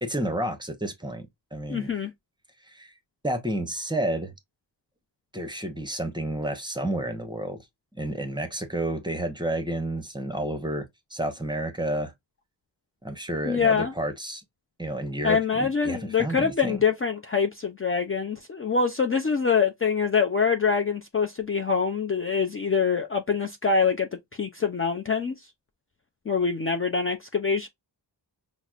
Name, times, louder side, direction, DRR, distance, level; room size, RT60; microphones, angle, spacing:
voice 1, 0.0-1.9 2.7-2.9 3.2-4.3 5.3-7.6 8.0-12.1 13.0-14.4 14.8-16.8, right 1 dB, 10° right, 0.7 m, -30 dB
voice 2, 1.7-2.1 13.4-13.9 15.2-25.5 26.3-27.7, left 5 dB, 30° left, 0.5 m, -25 dB
5.7 x 2.1 x 2.4 m
wide cardioid pair, 145°, 43 cm